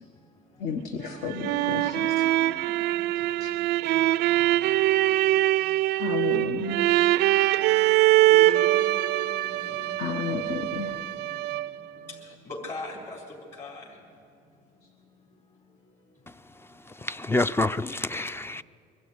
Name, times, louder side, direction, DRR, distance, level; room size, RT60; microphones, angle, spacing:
voice 1, 0.6-2.1 2.4-2.5 3.4-3.5 6.0-6.9 7.9-8.0 10.0-11.0, left 5 dB, 70° left, 1.4 m, -32 dB
sound 1, 1.1-11.9, right 16 dB, 80° right, 0.4 m, -23 dB
voice 2, 1.2-4.6 5.1-5.2 5.9-6.0 8.2-10.2 10.6-11.4 12.0-13.2 13.6-13.8, left 1 dB, 40° left, 3.7 m, -41 dB
voice 3, 16.3-18.6, left 2 dB, 15° left, 0.4 m, -29 dB
23.0 x 12.0 x 9.6 m
cardioid pair, 110°, 17 cm